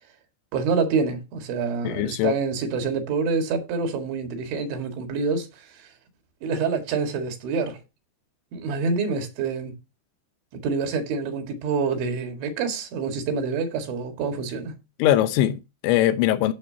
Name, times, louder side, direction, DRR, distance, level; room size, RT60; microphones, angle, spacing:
voice 1, 0.5-5.9 6.4-7.8 8.5-9.7 10.5-14.8, right 5 dB, 85° right, 4.3 m, -27 dB
voice 2, 1.8-2.3 15.0-16.5, left 13 dB, 85° left, 3.2 m, -21 dB
15.0 x 6.9 x 2.8 m
omnidirectional pair, 5.2 m